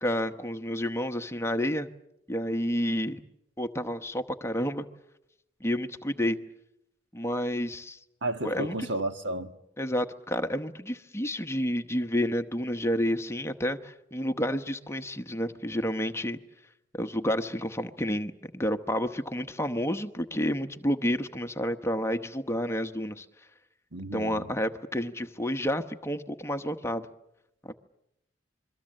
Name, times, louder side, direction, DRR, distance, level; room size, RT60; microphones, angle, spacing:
voice 1, 0.0-1.9 2.3-3.2 3.6-4.9 5.6-6.4 7.1-8.0 8.4-8.8 9.8-16.4 16.9-23.3 24.1-27.1 27.7-27.8, equal, 15° left, 1.0 m, -30 dB
voice 2, 8.2-9.5 23.9-24.5, right 1 dB, 65° right, 1.6 m, -32 dB
27.0 x 23.0 x 7.6 m
head